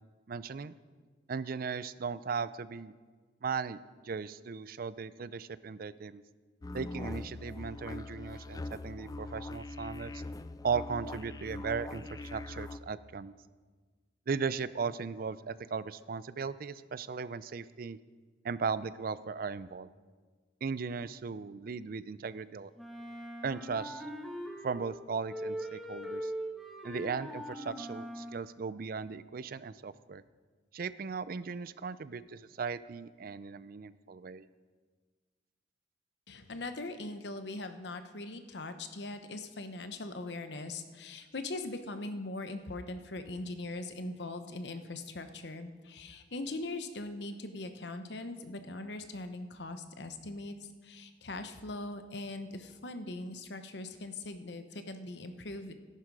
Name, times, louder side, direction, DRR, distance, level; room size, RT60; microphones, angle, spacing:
voice 1, 0.3-0.7 1.3-2.9 3.4-3.8 4.0-6.2 6.7-10.2 10.6-13.3 14.3-18.0 18.4-19.9 20.6-22.7 23.4-24.1 24.6-26.3 26.8-30.2 30.7-34.5, right 5 dB, 50° right, 16 dB, 0.4 m, -37 dB
sound 1, 6.6-12.8, left 2 dB, 20° left, 0.3 m, -42 dB
Wind instrument woodwind instrument, 22.8-25.0 25.3-28.4, equal, ahead, 1.2 m, -41 dB
voice 2, 36.3-55.8, left 2 dB, 65° left, 9 dB, 0.9 m, -41 dB
13.5 x 11.5 x 4.8 m, 1.4 s
head